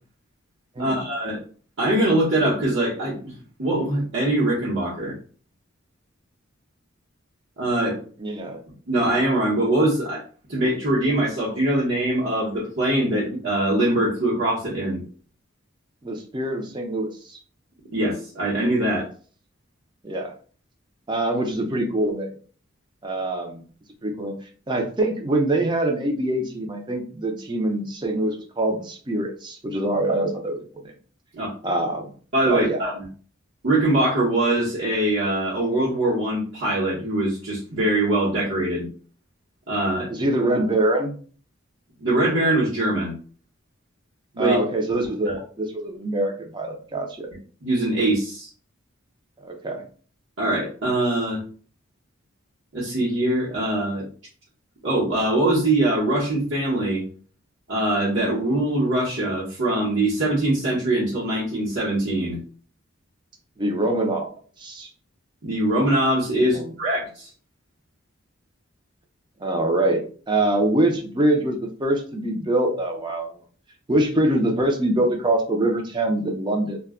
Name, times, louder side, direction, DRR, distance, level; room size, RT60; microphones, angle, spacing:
voice 1, 0.8-1.4 1.8-3.3 3.6-5.2 7.6-8.0 8.9-10.2 10.5-15.0 17.9-19.1 31.3-31.5 32.3-33.1 33.6-38.9 39.7-40.1 42.0-43.1 44.3-44.6 45.2-45.4 47.6-48.5 50.4-51.4 52.7-54.1 54.8-57.0 57.7-62.4 65.4-67.3, right 1 dB, 65° right, -8 dB, 0.9 m, -22 dB
voice 2, 8.2-8.6 16.0-17.4 20.0-20.3 21.1-22.3 23.0-23.6 24.0-24.3 24.7-30.9 31.6-32.1 32.5-32.8 40.1-41.2 44.4-47.3 49.4-49.8 63.6-64.3 64.6-64.9 66.5-66.7 69.4-73.3 73.9-76.8, right 1 dB, 25° right, 3 dB, 0.5 m, -24 dB
2.2 x 2.1 x 3.5 m, 0.42 s
head